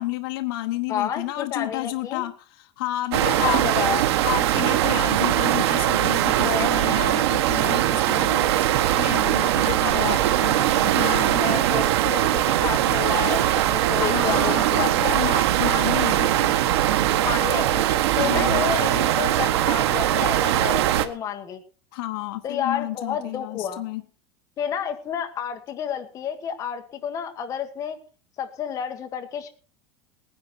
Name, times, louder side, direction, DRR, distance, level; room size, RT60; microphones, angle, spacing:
voice 1, 0.0-3.7 4.2-8.5 9.0-11.6 14.0-16.6 18.2-18.6 21.9-24.0, left 17 dB, 60° left, 5 dB, 1.1 m, -31 dB
voice 2, 0.9-2.2 3.2-4.0 6.4-7.2 8.9-9.1 9.6-10.2 11.4-14.9 17.2-21.6 22.4-23.8 24.6-28.0 28.4-29.5, left 8 dB, 25° left, 5 dB, 1.5 m, -30 dB
sound 1, 3.1-21.1, right 13 dB, 85° right, 1.3 m, -21 dB
18.5 x 10.5 x 4.3 m, 0.38 s
supercardioid pair, 175°, 13 cm